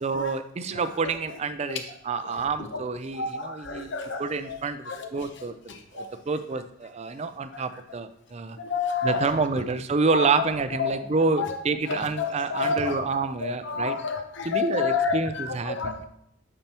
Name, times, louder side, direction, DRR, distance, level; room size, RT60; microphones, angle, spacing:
voice 1, 0.0-3.9 4.2-5.6 5.9-8.6 9.0-14.0 14.4-16.0, right 4 dB, 30° right, 11 dB, 0.4 m, -28 dB
voice 2, 3.1-4.2 4.5-4.6 4.9-5.0 6.0-6.1 8.6-9.2 10.1-10.2 10.8-11.0 11.4-11.5 11.9-13.0 13.4-16.0, left 5 dB, 60° left, 6 dB, 0.8 m, -29 dB
8.6 x 4.4 x 2.9 m, 0.75 s
head